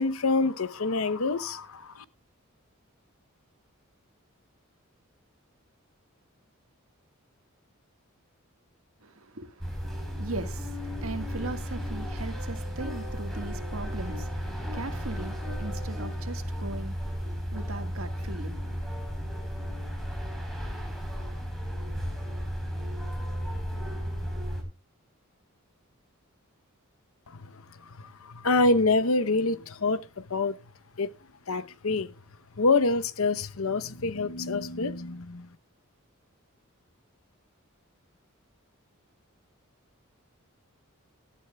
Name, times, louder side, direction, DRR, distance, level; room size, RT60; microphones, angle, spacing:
voice 1, 0.0-2.0 27.3-30.6 31.0-31.1 31.5-32.1 32.6-35.5, left 3 dB, 80° left, 0.9 m, -27 dB
voice 2, 9.0-19.6, right 2 dB, 80° right, 1.7 m, -40 dB
sound 1, 9.6-24.6, equal, ahead, 4.2 m, -34 dB
18.5 x 12.0 x 2.3 m
head